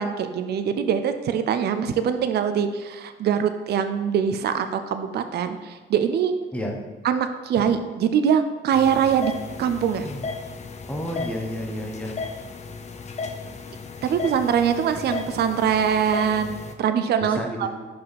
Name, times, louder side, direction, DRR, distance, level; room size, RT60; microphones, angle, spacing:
voice 1, 0.0-6.3 7.0-9.3 9.6-10.1 14.0-16.5 16.8-17.7, right 8 dB, 55° right, 9 dB, 0.5 m, -23 dB
sound 1, 8.7-16.7, left 4 dB, 35° left, 0.6 m, -35 dB
voice 2, 10.9-12.2 17.2-17.7, equal, 5° left, 0 dB, 1.1 m, -31 dB
5.4 x 5.3 x 4.0 m, 1.4 s
cardioid pair, 90°, 20 cm